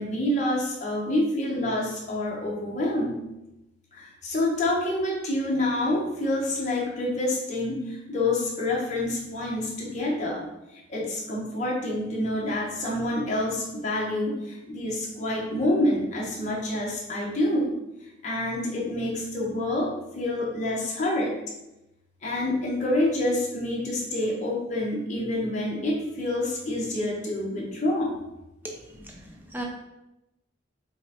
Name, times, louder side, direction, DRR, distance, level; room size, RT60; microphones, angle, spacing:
voice 1, 0.0-3.2 3.9-17.7 18.2-21.3 22.2-28.2 29.2-29.4, left 1 dB, 40° left, -4 dB, 0.8 m, -27 dB
voice 2, 28.6-29.6, right 1 dB, 10° right, 0 dB, 0.5 m, -38 dB
5.4 x 2.1 x 2.9 m, 0.92 s
head